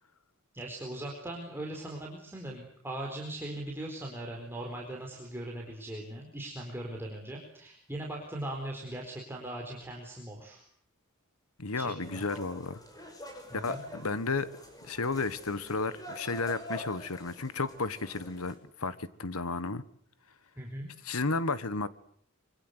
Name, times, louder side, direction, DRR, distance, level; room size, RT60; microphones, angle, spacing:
voice 1, 0.5-10.6 11.8-12.2 13.5-13.8 20.6-20.9, right 1 dB, 10° right, 4.3 m, -39 dB
voice 2, 11.6-12.8 13.5-14.5 14.8-19.8 21.0-21.9, left 3 dB, 75° left, 1.5 m, -33 dB
sound 1, 12.0-18.6, left 1 dB, 15° left, 5.9 m, -46 dB
26.0 x 24.0 x 8.2 m
head